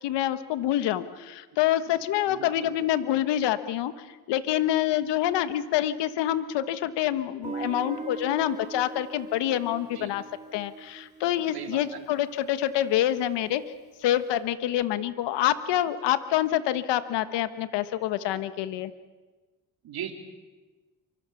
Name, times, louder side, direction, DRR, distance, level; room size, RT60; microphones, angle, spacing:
voice 1, 0.0-10.2 10.5-13.6 14.0-18.9, left 12 dB, 85° left, 12 dB, 1.3 m, -26 dB
voice 2, 2.3-2.7 9.9-10.1 11.5-12.0 19.8-20.1, right 10 dB, 65° right, 4 dB, 3.8 m, -38 dB
Guitar, 7.4-12.3, right 3 dB, 15° right, 2.6 m, -40 dB
27.0 x 24.5 x 7.1 m, 1.2 s
cardioid pair, 110°, 41 cm